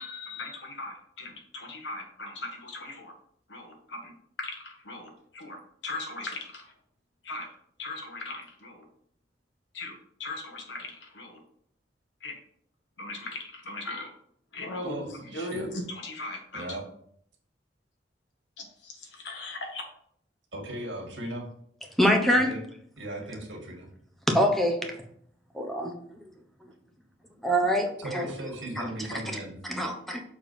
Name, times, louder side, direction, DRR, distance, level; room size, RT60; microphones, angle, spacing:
voice 1, 0.0-3.1 3.5-4.1 4.4-6.7 7.2-7.5 7.8-8.8 9.7-11.4 12.2-12.3 13.0-14.1 14.5-16.7 18.6-19.8, left 2 dB, 75° left, 2 dB, 1.6 m, -39 dB
voice 2, 14.8-15.7 16.5-16.8 20.5-21.5 22.3-22.6 23.0-23.9 28.0-29.6, right 1 dB, 80° right, 1 dB, 2.0 m, -37 dB
voice 3, 22.0-22.5 24.3-24.9 25.5-25.9 26.6-26.7 27.4-28.3 28.8-29.2 29.7-30.2, equal, ahead, 2 dB, 1.0 m, -25 dB
6.9 x 3.6 x 5.4 m, 0.66 s
head